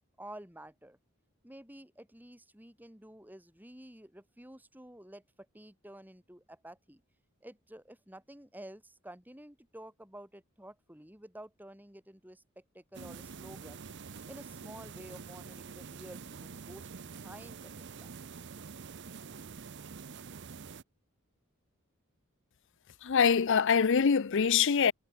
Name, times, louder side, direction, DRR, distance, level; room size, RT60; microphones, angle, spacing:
voice 1, 0.2-1.0 1.4-5.2 5.5-7.0 7.4-13.8 14.3-18.1, right 1 dB, 10° right, 4.7 m, -51 dB
sound 1, 12.9-20.8, right 5 dB, 55° right, 0.7 m, -46 dB
voice 2, 23.0-24.9, left 6 dB, 60° left, 0.5 m, -24 dB
head